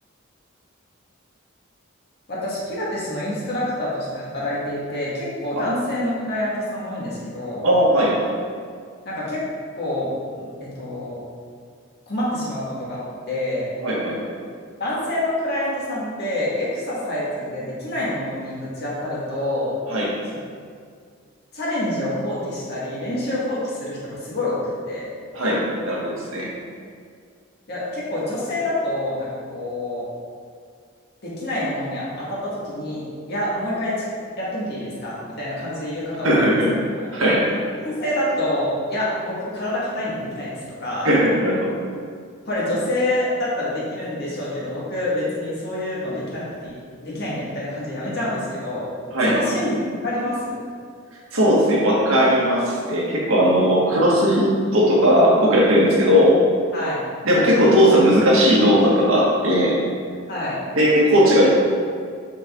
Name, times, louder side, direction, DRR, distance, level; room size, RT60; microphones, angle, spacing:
voice 1, 2.3-7.7 9.1-9.4 9.7-11.2 12.1-13.7 14.8-19.8 21.5-24.6 24.9-25.1 27.7-30.1 31.2-34.1 34.4-36.5 37.0-37.1 37.8-41.1 42.5-46.7 47.0-48.9 49.3-49.8 50.0-50.5 56.7-57.0 60.3-60.6, left 1 dB, 50° left, -8 dB, 1.9 m, -27 dB
voice 2, 7.6-8.2 13.8-14.2 19.9-20.1 25.3-26.5 36.2-36.7 37.1-37.5 41.0-41.7 49.1-49.4 51.3-56.4 57.2-59.8 60.7-61.5, equal, 75° right, -4 dB, 1.7 m, -17 dB
6.5 x 6.3 x 3.7 m, 2.1 s
head